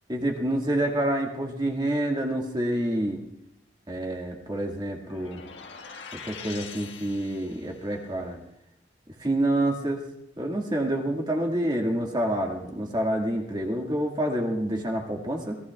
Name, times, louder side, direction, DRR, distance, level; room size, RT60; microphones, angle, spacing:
voice 1, 0.1-3.2 3.9-5.4 6.2-8.4 9.2-10.0 10.4-15.6, right 1 dB, 25° right, 1 dB, 1.9 m, -27 dB
sound 1, 5.0-7.8, left 6 dB, 90° left, 1.5 m, -43 dB
25.5 x 18.5 x 2.4 m, 0.83 s
head